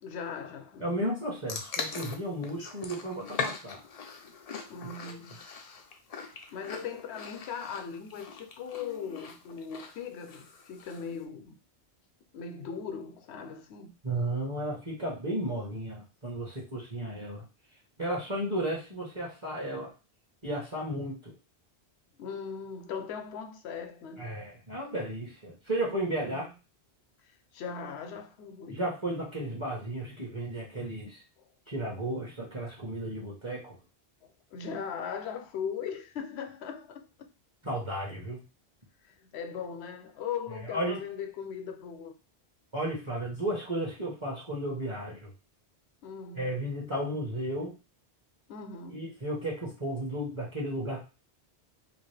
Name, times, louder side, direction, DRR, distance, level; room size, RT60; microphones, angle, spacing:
voice 1, 0.0-0.9 4.7-5.4 6.5-11.6 12.3-13.9 22.2-24.3 26.2-26.5 27.2-28.8 34.5-37.3 39.0-42.1 46.0-46.5 48.5-49.1, left 6 dB, 75° left, 0.8 m, -39 dB
voice 2, 0.8-3.8 14.0-17.4 18.0-19.9 20.4-21.3 24.2-26.5 28.7-31.2 31.7-33.8 37.6-38.4 40.7-41.0 42.7-45.3 46.3-47.8 48.9-51.0, right 1 dB, 30° right, 0.9 m, -34 dB
eating cereal, 1.5-11.1, left 5 dB, 55° left, 0.4 m, -41 dB
2.8 x 2.5 x 3.2 m
omnidirectional pair, 1.1 m